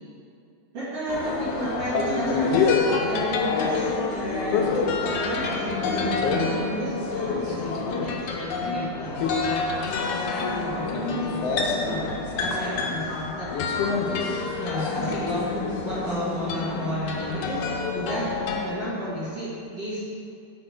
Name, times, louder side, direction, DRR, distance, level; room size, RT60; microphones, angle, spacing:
voice 1, 0.7-17.7 17.9-20.0, equal, 55° right, -11 dB, 2.7 m, -33 dB
sound 1, 1.1-18.7, left 4 dB, 75° left, 1.5 m, -27 dB
6.7 x 6.6 x 4.8 m, 2.5 s
omnidirectional pair, 3.4 m